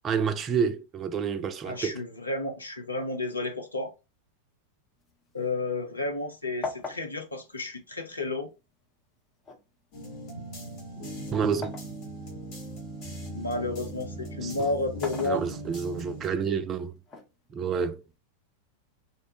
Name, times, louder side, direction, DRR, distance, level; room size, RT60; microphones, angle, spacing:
voice 1, 0.0-2.0 11.3-11.7 14.4-14.5 15.2-17.0 17.5-18.0, right 6 dB, 25° right, 0.4 m, -29 dB
voice 2, 1.6-3.9 5.3-8.5 13.3-15.4, left 2 dB, 80° left, 0.7 m, -31 dB
sound 1, 5.0-6.3 6.6-8.6 9.4-12.0 12.5-13.7 14.8-15.9 17.1-18.1, left 3 dB, 25° left, 0.6 m, -41 dB
sound 2, 9.9-16.3, right 1 dB, 40° left, 1.1 m, -39 dB
2.8 x 2.1 x 2.8 m
figure-of-eight pair, 90°, 0 cm